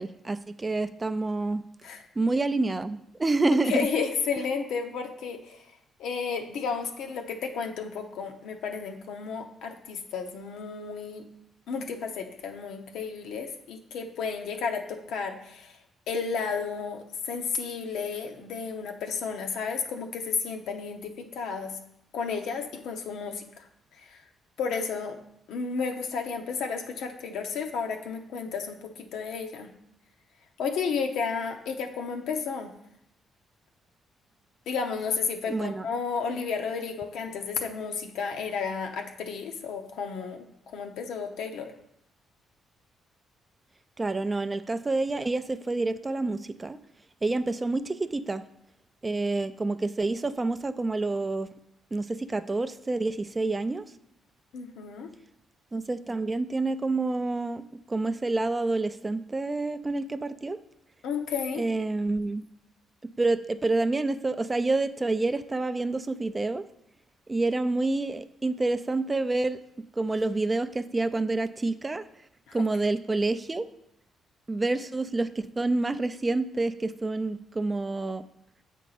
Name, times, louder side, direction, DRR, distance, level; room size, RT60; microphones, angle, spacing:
voice 1, 0.0-1.6 2.2-3.9 35.5-35.9 44.0-46.8 47.2-48.4 49.0-51.5 51.9-53.8 55.7-60.6 61.6-62.4 63.0-66.6 67.3-69.6 70.0-72.0 72.5-73.7 74.5-78.2, right 2 dB, 20° right, 12 dB, 0.3 m, -28 dB
voice 2, 3.7-5.6 6.0-11.2 11.7-15.7 16.1-21.8 22.1-23.7 24.0-24.2 24.6-25.2 25.5-29.7 30.6-32.7 34.7-41.7 54.5-55.1 61.0-61.6 72.5-72.6, left 5 dB, 80° left, 4 dB, 0.7 m, -32 dB
7.3 x 4.5 x 3.9 m, 0.77 s
cardioid pair, 90°, 0 cm